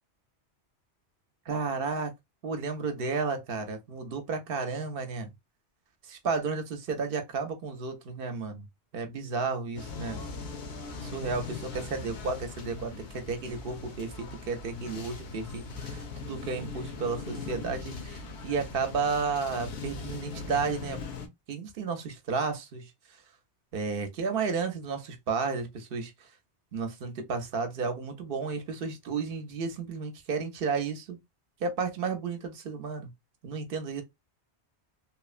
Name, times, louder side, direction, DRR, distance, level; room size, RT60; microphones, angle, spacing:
voice 1, 1.5-2.1 2.4-5.3 6.0-8.7 8.9-10.2 11.0-21.0 21.5-23.2 23.7-26.3 26.7-31.2 31.6-33.1 33.4-34.0, right 4 dB, 60° right, 0.7 m, -32 dB
sound 1, 9.8-21.3, left 4 dB, 75° left, 0.9 m, -40 dB
2.9 x 2.0 x 2.4 m
omnidirectional pair, 1.1 m